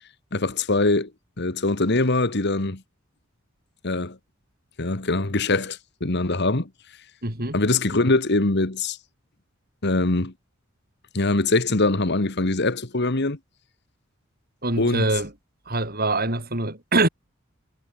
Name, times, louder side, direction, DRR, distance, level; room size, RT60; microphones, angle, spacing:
voice 1, 0.3-1.1 1.4-2.8 3.8-4.2 4.8-6.7 7.5-9.0 9.8-10.3 11.1-13.4 14.8-15.1, left 2 dB, 55° left, 1.7 m, -22 dB
voice 2, 7.2-7.6 14.6-15.3 15.7-17.1, right 2 dB, 50° right, 8.0 m, -24 dB
head